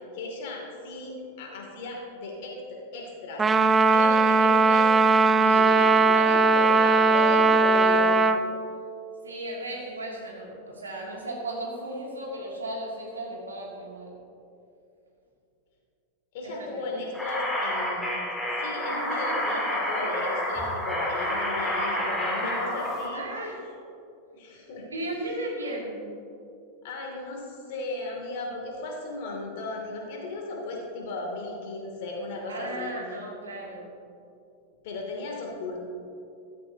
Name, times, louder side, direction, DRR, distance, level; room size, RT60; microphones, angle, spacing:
voice 1, 0.1-3.5 3.9-4.9 5.4-8.2 16.3-18.1 18.6-23.2 24.3-24.8 26.8-32.9 34.8-35.8, left 2 dB, 50° left, -1 dB, 2.8 m, -35 dB
Trumpet, 3.4-8.4, right 3 dB, 15° right, 0.5 m, -19 dB
voice 2, 9.2-14.1 16.4-16.8 23.1-23.6 24.9-26.1 32.5-33.9, right 1 dB, 75° right, -2 dB, 2.7 m, -35 dB
sound 1, 17.1-23.1, left 1 dB, 5° left, 2.6 m, -29 dB
14.5 x 14.0 x 2.9 m, 2.7 s
figure-of-eight pair, 90°, 0 cm